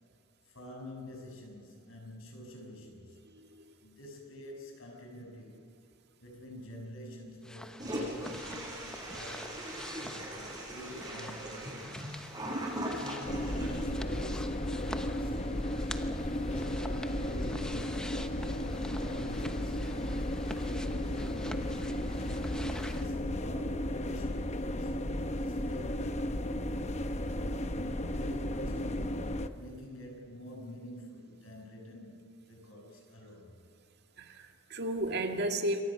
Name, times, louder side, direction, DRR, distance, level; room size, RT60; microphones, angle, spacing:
voice 1, 0.5-3.2 3.8-5.6 6.2-9.6 10.0-12.2 13.0-15.9 16.4-18.2 18.6-20.1 20.6-22.2 22.8-24.9 25.4-26.4 27.2-33.5, equal, 75° left, 1 dB, 6.9 m, -47 dB
voice 2, 3.3-3.6 34.2-35.8, right 1 dB, 55° right, 5 dB, 2.1 m, -33 dB
sound 1, 7.4-23.1, equal, 5° left, 1.0 m, -47 dB
Toilet flush, 7.8-13.8, right 1 dB, 20° right, 7.4 m, -39 dB
sound 2, 13.3-29.5, left 1 dB, 35° left, 1.0 m, -34 dB
27.5 x 23.5 x 6.1 m, 2.5 s
head